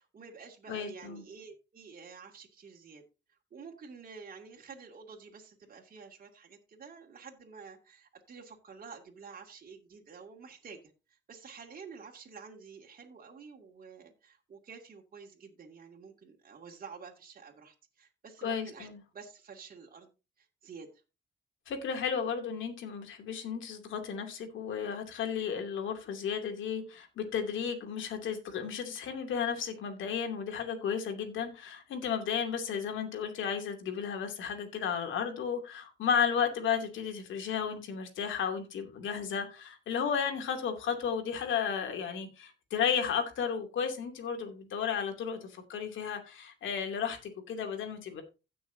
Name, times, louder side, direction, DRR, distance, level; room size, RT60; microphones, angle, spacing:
voice 1, 0.0-3.0 3.5-10.8 11.1-18.9 19.1-20.1 20.4-21.0, right 5 dB, 45° right, 2.4 m, -50 dB
voice 2, 0.7-1.2 18.4-19.0 21.7-48.2, left 7 dB, 75° left, 2.7 m, -33 dB
16.5 x 6.2 x 2.7 m
cardioid pair, 90°, 20 cm